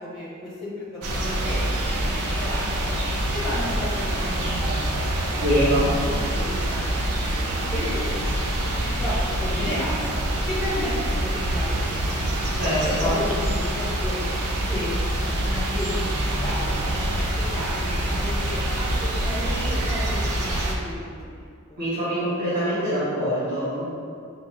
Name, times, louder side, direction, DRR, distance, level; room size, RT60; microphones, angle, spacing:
voice 1, 0.0-3.0 3.3-5.5 6.0-10.2 10.5-12.5 12.8-14.3 14.7-21.4 21.7-21.8, left 1 dB, ahead, -10 dB, 0.8 m, -34 dB
sound 1, 1.0-20.8, right 1 dB, 85° right, 0.6 m, -25 dB
voice 2, 5.4-5.8 12.6-13.1 21.8-23.8, equal, 45° right, -14 dB, 1.1 m, -24 dB
4.5 x 2.0 x 3.5 m, 2.3 s
head